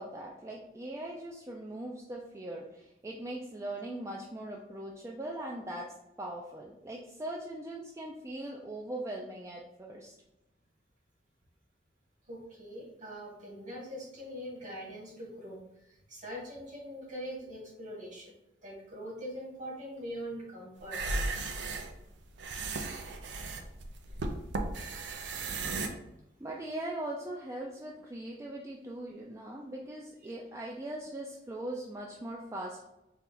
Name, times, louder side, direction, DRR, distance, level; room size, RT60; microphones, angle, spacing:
voice 1, 0.0-5.9 6.2-10.1 26.4-32.8, right 1 dB, 15° right, -1 dB, 0.4 m, -40 dB
voice 2, 12.3-18.3 18.6-21.0, equal, 45° right, -3 dB, 1.4 m, -42 dB
sound 1, 20.8-25.9, right 3 dB, 90° right, 0.5 m, -35 dB
4.2 x 2.3 x 3.8 m, 0.91 s
head